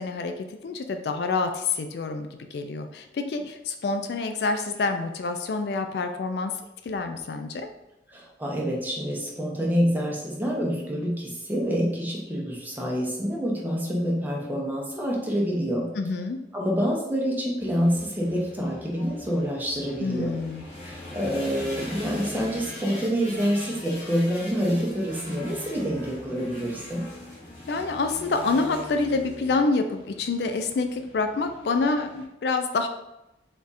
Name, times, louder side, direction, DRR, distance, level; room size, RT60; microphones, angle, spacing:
voice 1, 0.0-6.5 6.8-7.7 15.9-16.4 20.0-20.6 27.7-32.9, left 3 dB, 65° left, 6 dB, 0.4 m, -27 dB
voice 2, 8.1-15.9 16.5-20.3 20.8-27.1, equal, 10° right, -3 dB, 0.8 m, -27 dB
sound 1, 17.6-32.2, left 1 dB, 45° left, 1.4 m, -41 dB
3.5 x 2.5 x 4.0 m, 0.91 s
head